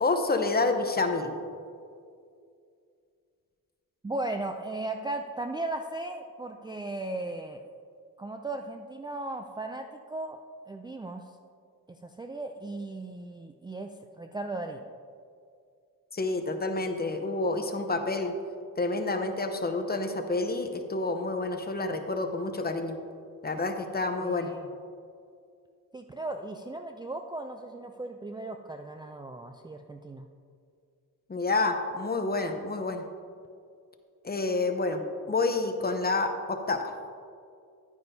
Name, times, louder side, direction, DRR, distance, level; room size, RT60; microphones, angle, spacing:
voice 1, 0.0-1.3 16.1-18.3 18.8-23.0 23.4-24.5 31.3-33.0 34.2-35.0 35.3-36.8, left 3 dB, 30° left, 6 dB, 0.8 m, -28 dB
voice 2, 4.0-7.6 8.2-11.2 11.9-14.9 24.2-24.7 25.9-30.3, right 2 dB, 15° right, 4 dB, 0.3 m, -37 dB
11.0 x 9.4 x 2.7 m, 2.3 s
cardioid pair, 95°, 34 cm